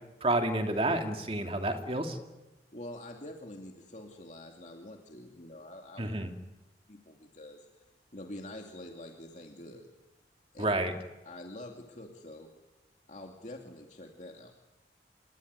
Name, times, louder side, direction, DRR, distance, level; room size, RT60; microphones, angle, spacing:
voice 1, 0.2-2.2 6.0-6.3 10.6-10.9, right 1 dB, 30° right, 4 dB, 2.7 m, -29 dB
voice 2, 2.7-6.1 6.9-7.8 8.1-9.9 10.5-10.7 11.2-12.5 13.1-14.5, left 1 dB, 40° left, 2 dB, 2.6 m, -46 dB
27.5 x 22.0 x 9.8 m, 1.1 s
head